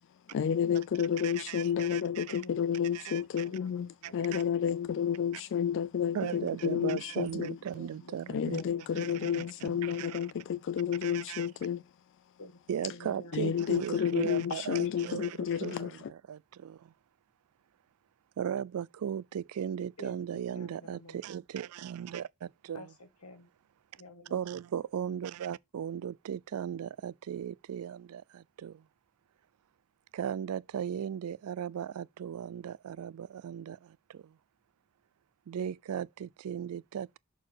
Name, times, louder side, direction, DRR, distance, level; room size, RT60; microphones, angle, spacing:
voice 1, 0.3-7.6 8.3-11.8 13.3-16.1, left 8 dB, 60° left, 0.3 m, -31 dB
voice 2, 1.2-2.4 2.9-3.4 4.0-4.4 6.1-8.6 8.9-10.2 11.0-11.5 12.7-16.9 18.4-22.9 24.3-28.8 30.1-34.4 35.5-37.2, right 8 dB, 75° right, 0.3 m, -37 dB
voice 3, 2.3-4.5 7.3-9.1 12.4-14.8 20.0-21.2 22.7-23.5 24.0-24.4, left 2 dB, 85° left, 1.6 m, -52 dB
6.5 x 4.2 x 6.1 m
head